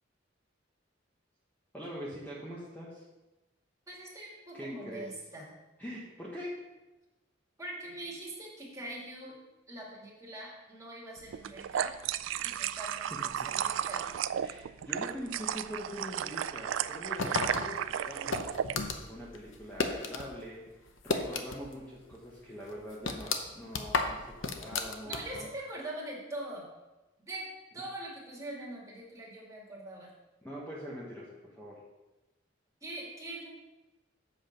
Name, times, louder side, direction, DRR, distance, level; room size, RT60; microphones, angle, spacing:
voice 1, 1.7-3.0 4.5-5.1 5.8-6.6 13.1-13.2 14.4-18.5 19.1-20.7 21.0-25.5 30.4-31.3 31.5-31.8, equal, 10° left, -6 dB, 1.2 m, -43 dB
voice 2, 3.9-5.5 7.6-9.4 9.7-11.9 12.4-14.0 25.0-26.6 27.3-27.5 27.7-30.1 32.8-33.5, right 1 dB, 15° right, -4 dB, 2.2 m, -43 dB
sound 1, 11.3-18.8, right 9 dB, 80° right, 0.3 m, -34 dB
sound 2, 17.2-20.3 20.6-21.8 22.1-22.2 22.7-25.5, left 4 dB, 80° left, 0.8 m, -33 dB
8.0 x 6.3 x 5.2 m, 1.1 s
head